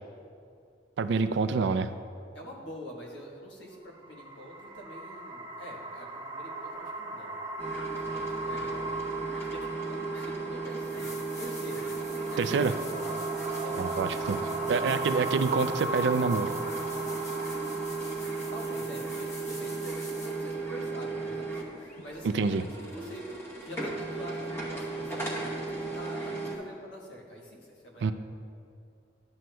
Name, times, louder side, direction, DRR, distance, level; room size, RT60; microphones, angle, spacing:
voice 1, 1.0-1.9 12.4-12.7 13.8-16.5 22.3-22.6 28.0-28.1, right 4 dB, 70° right, 11 dB, 0.3 m, -27 dB
voice 2, 2.3-7.4 8.0-9.0 9.4-13.3 13.6-15.1 18.5-28.1, equal, 80° left, -1 dB, 1.4 m, -45 dB
sound 1, 3.8-21.0, right 2 dB, 25° right, 0.7 m, -38 dB
sound 2, 7.6-26.6, right 3 dB, 15° left, 0.9 m, -35 dB
sound 3, 10.8-20.5 23.3-23.4, left 1 dB, 40° left, 1.1 m, -47 dB
11.5 x 7.7 x 2.2 m, 2.3 s
head